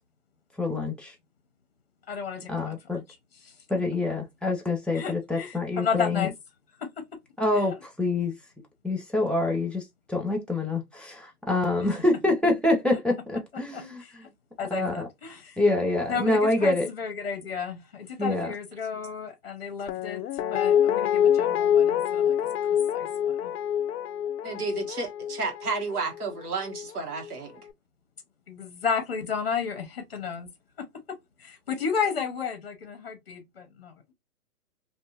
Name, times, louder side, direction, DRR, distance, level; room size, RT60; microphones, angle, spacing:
voice 1, 0.6-1.1 2.5-3.0 3.7-6.3 7.4-8.3 8.8-14.0 14.7-15.1 15.6-16.9 18.2-18.5, left 2 dB, 5° left, 0.3 m, -26 dB
voice 2, 2.1-3.0 3.4-3.6 4.9-6.3 7.5-7.8 11.9-12.0 13.7-14.3 14.6-15.6 16.1-20.2 20.5-22.4 22.9-23.5 28.5-30.5 31.4-34.1, left 6 dB, 40° left, 0.8 m, -33 dB
Guitar, 19.9-26.9 27.2-27.3, left 9 dB, 85° left, 0.5 m, -26 dB
voice 3, 24.4-27.6, right 4 dB, 70° right, 1.2 m, -32 dB
2.6 x 2.5 x 2.3 m
hypercardioid pair, 180°, 47 cm